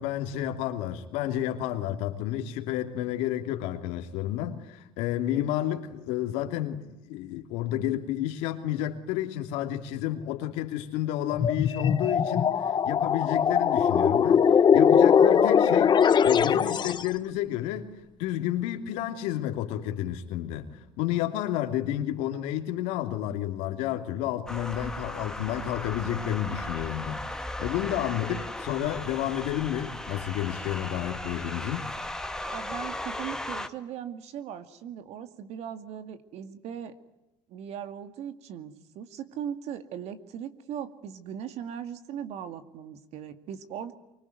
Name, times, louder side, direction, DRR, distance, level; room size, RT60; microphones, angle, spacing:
voice 1, 0.0-17.9 18.2-20.7 21.0-27.2 27.6-31.9, left 12 dB, 85° left, 2.9 m, -31 dB
sound 1, 11.3-17.1, left 7 dB, 40° left, 1.5 m, -21 dB
sound 2, 24.5-33.7, left 1 dB, 5° left, 1.8 m, -36 dB
voice 2, 32.4-36.9 37.5-43.9, right 9 dB, 70° right, 2.3 m, -39 dB
24.5 x 24.5 x 9.4 m
supercardioid pair, 100°, 12 cm